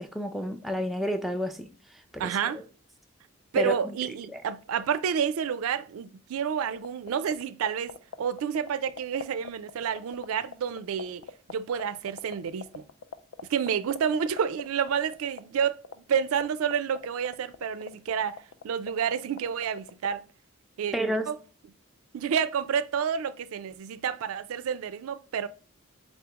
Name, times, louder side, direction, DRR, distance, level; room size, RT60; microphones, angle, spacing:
voice 1, 0.0-1.7 2.1-2.3 3.6-3.7 4.3-4.4 20.9-21.3, equal, ahead, 0.4 m, -30 dB
voice 2, 2.2-2.6 3.5-12.8 13.5-15.8 16.1-20.2 20.8-20.9 21.3-21.4 22.1-25.5, right 7 dB, 85° right, 0.4 m, -29 dB
sound 1, 6.8-20.1, left 6 dB, 75° left, 0.4 m, -38 dB
4.1 x 3.4 x 2.9 m
head